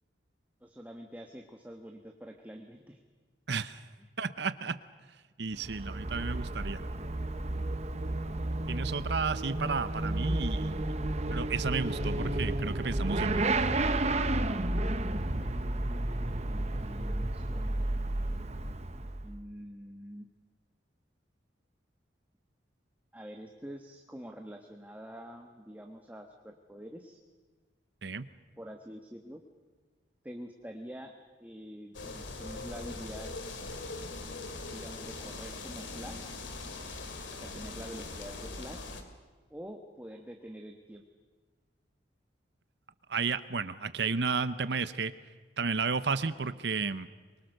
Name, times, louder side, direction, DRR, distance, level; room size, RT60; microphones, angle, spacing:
voice 1, 0.6-3.0 4.0-4.1 15.1-15.8 16.1-17.7 19.2-20.3 23.1-27.2 28.6-29.4 30.2-31.1 31.4-33.3 34.7-36.4 37.4-38.9 39.5-41.0, equal, 10° right, 3 dB, 1.3 m, -46 dB
voice 2, 3.5-3.8 4.2-4.8 5.4-6.8 8.7-10.9 11.3-13.5 28.0-28.3 43.1-45.1 45.6-47.1, right 4 dB, 65° right, 14 dB, 0.8 m, -32 dB
Motorcycle / Accelerating revving vroom, 5.5-19.4, right 2 dB, 35° right, 1.0 m, -32 dB
sound 1, 31.9-39.0, left 3 dB, 85° left, 2.6 m, -41 dB
24.0 x 23.5 x 6.6 m, 1.4 s
head